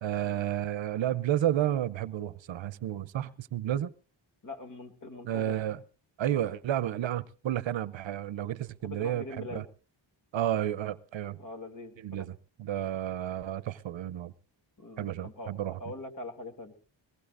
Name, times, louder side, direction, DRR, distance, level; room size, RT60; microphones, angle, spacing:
voice 1, 0.0-3.9 5.2-5.8 6.2-9.6 10.3-11.4 12.0-14.3 15.0-15.8, right 11 dB, 70° right, 0.8 m, -31 dB
voice 2, 4.4-5.5 8.8-9.6 11.4-12.2 14.8-15.5 15.8-16.7, left 2 dB, 40° left, 2.6 m, -43 dB
22.0 x 19.0 x 2.5 m
wide cardioid pair, 115°, 47 cm